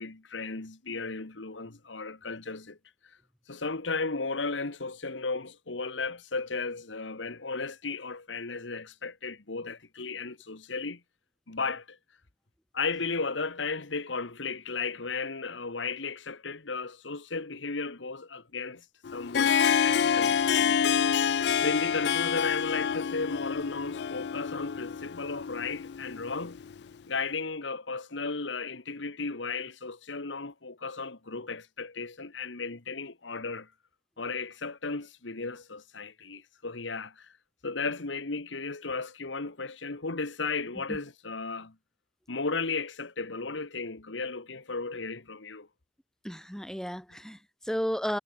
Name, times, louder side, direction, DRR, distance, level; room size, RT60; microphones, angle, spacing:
voice 1, 0.0-2.8 3.0-3.2 3.5-11.0 11.5-12.0 12.7-18.9 19.1-21.0 21.6-26.6 27.1-33.7 34.2-37.3 37.6-41.8 42.3-45.7, left 4 dB, 90° left, 1.6 m, -35 dB
Harp, 19.0-26.8, left 7 dB, 65° left, 0.4 m, -27 dB
voice 2, 46.2-48.2, equal, 5° left, 3.4 m, -33 dB
head